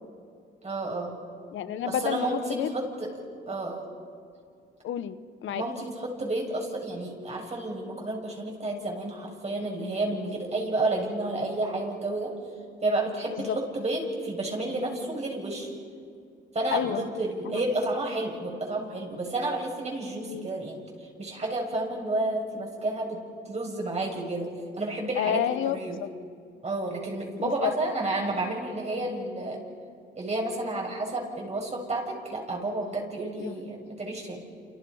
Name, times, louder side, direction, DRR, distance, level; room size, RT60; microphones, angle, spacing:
voice 1, 0.6-1.1 1.9-3.1 3.5-3.8 5.5-12.3 12.8-15.7 16.5-23.2 23.5-26.0 26.6-29.6 30.2-34.4, right 2 dB, 35° right, 0 dB, 7.7 m, -31 dB
voice 2, 1.5-2.8 3.5-3.6 4.8-5.6 13.3-13.6 16.7-17.0 17.4-17.6 20.3-20.5 25.2-26.1 27.4-27.7 33.4-33.5, left 9 dB, 75° left, 12 dB, 1.2 m, -30 dB
29.5 x 29.0 x 5.7 m, 2.3 s
cardioid pair, 90°, 20 cm